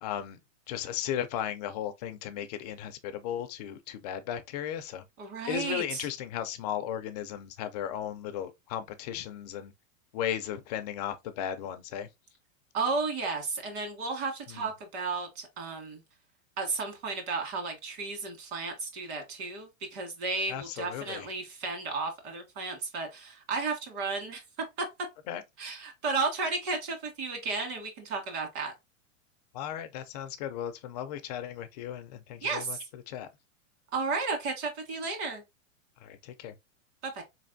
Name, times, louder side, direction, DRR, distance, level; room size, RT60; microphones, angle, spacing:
voice 1, 0.0-0.4 0.7-5.0 5.5-9.7 10.1-12.1 14.5-14.7 20.5-21.3 25.3-25.4 29.5-33.3 36.0-36.6, left 10 dB, 35° left, 0.4 m, -36 dB
voice 2, 5.2-6.1 12.7-16.0 16.6-24.4 24.8-24.9 25.6-28.7 32.4-32.8 33.9-35.4 37.0-37.2, right 4 dB, 50° right, 1.9 m, -33 dB
4.2 x 3.3 x 2.5 m
supercardioid pair, 150°, 40 cm